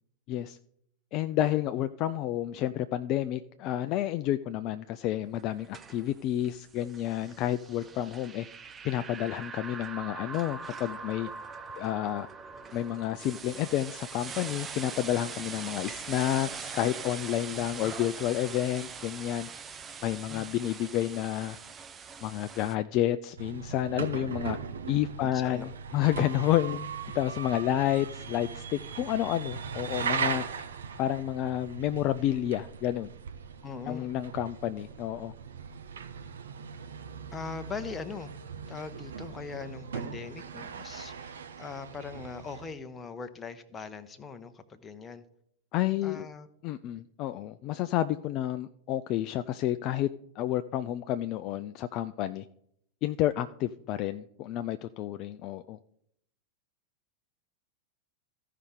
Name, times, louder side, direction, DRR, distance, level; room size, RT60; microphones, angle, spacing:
voice 1, 1.1-8.5 8.8-11.3 11.8-12.3 12.7-19.5 20.0-21.6 22.2-24.6 24.9-26.9 27.2-30.6 31.0-33.1 33.9-35.3 45.7-46.3 46.6-50.1 50.4-52.5 53.0-55.8, left 12 dB, 40° left, 10 dB, 0.3 m, -30 dB
sound 1, 5.4-22.8, right 5 dB, 20° right, 0.6 m, -42 dB
sound 2, 23.4-42.7, right 6 dB, 65° right, 0.7 m, -39 dB
voice 2, 25.2-26.0 26.7-26.8 33.6-34.1 37.3-38.3 38.7-45.2 46.0-46.5, left 5 dB, 15° left, 8 dB, 0.9 m, -41 dB
15.0 x 5.5 x 3.7 m, 0.71 s
figure-of-eight pair, 90°, 0 cm